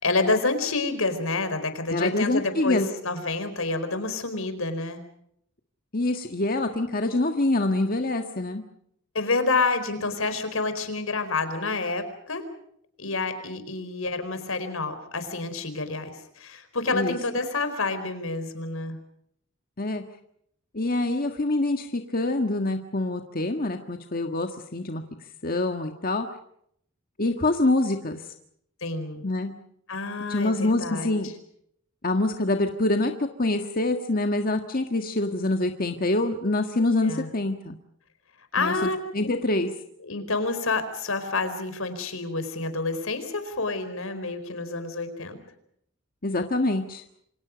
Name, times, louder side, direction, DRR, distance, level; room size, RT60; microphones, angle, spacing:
voice 1, 0.0-5.0 9.1-12.4 13.0-19.0 28.8-29.2 29.9-31.1 37.0-37.3 38.5-39.0 40.0-45.4, left 3 dB, 80° left, 10 dB, 4.6 m, -28 dB
voice 2, 1.9-2.9 5.9-8.6 16.9-17.2 19.8-20.0 20.7-25.0 25.4-26.3 27.2-28.2 29.2-29.5 30.3-31.3 32.0-33.1 33.4-37.8 38.6-39.7 46.2-47.0, left 2 dB, 45° left, 5 dB, 1.7 m, -25 dB
28.0 x 26.0 x 5.2 m, 0.71 s
head